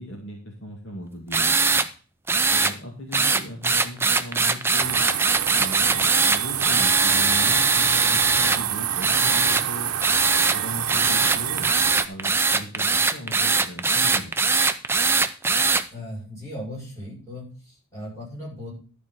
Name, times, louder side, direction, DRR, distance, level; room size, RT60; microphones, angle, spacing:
voice 1, 0.0-1.8 2.5-5.0 5.5-9.9 10.5-11.8 12.1-14.5, equal, 55° left, 0 dB, 2.1 m, -37 dB
sound 1, 1.3-1.9 2.3-2.7 3.1-8.6 9.0-9.6 10.0-10.6 10.9-15.8, right 4 dB, 10° right, 0.5 m, -21 dB
sound 2, 4.8-12.1, right 11 dB, 85° right, 0.8 m, -27 dB
voice 2, 15.9-18.7, left 1 dB, 15° left, -5 dB, 6.4 m, -37 dB
11.5 x 4.6 x 7.6 m, 0.38 s
head